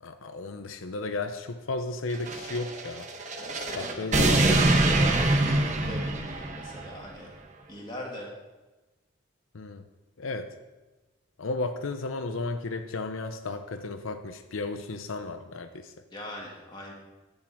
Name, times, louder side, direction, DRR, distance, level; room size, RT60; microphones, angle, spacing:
voice 1, 0.0-3.1 3.8-4.6 9.5-9.8 10.2-10.5 11.4-15.9, left 3 dB, 85° left, 7 dB, 0.7 m, -34 dB
sound 1, 2.1-6.9, right 2 dB, 35° right, 1.0 m, -25 dB
voice 2, 3.4-7.3 7.7-8.3 16.1-16.9, left 1 dB, 20° left, -2 dB, 2.2 m, -40 dB
10.5 x 5.4 x 8.4 m, 1.2 s
head